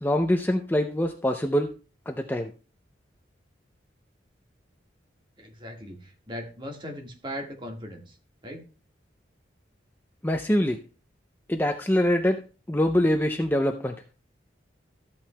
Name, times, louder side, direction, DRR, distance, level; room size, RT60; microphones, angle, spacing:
voice 1, 0.0-1.7 2.1-2.5 10.2-10.8 11.5-12.4 12.7-14.0, left 1 dB, 10° left, 5 dB, 0.5 m, -24 dB
voice 2, 5.4-8.2 8.4-8.6, equal, 25° right, 2 dB, 1.6 m, -38 dB
14.0 x 8.6 x 2.2 m, 0.34 s
head